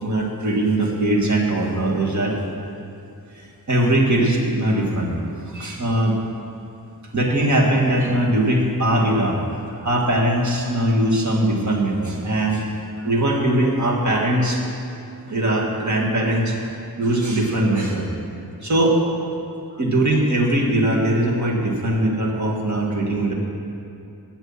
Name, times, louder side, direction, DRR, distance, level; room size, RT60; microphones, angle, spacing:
voice 1, 0.0-2.4 3.7-5.1 5.5-6.1 7.1-9.4 9.9-12.6 13.0-14.6 15.3-16.5 17.0-18.1 18.6-19.0 19.8-23.3, right 1 dB, 50° right, -1 dB, 1.8 m, -20 dB
8.2 x 8.0 x 7.2 m, 2.7 s
wide cardioid pair, 90°, 38 cm